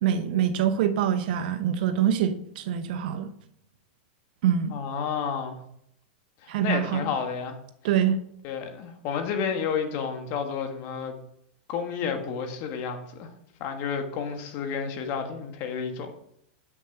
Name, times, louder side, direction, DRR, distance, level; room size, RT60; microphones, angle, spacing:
voice 1, 0.0-3.3 4.4-4.7 6.5-7.1 7.8-8.2, right 9 dB, 65° right, 0.9 m, -25 dB
voice 2, 4.7-5.6 6.4-7.6 8.4-11.1 11.7-13.3 13.6-16.2, left 6 dB, 45° left, 1.7 m, -31 dB
7.9 x 6.2 x 5.3 m
hypercardioid pair, 125°, 5 cm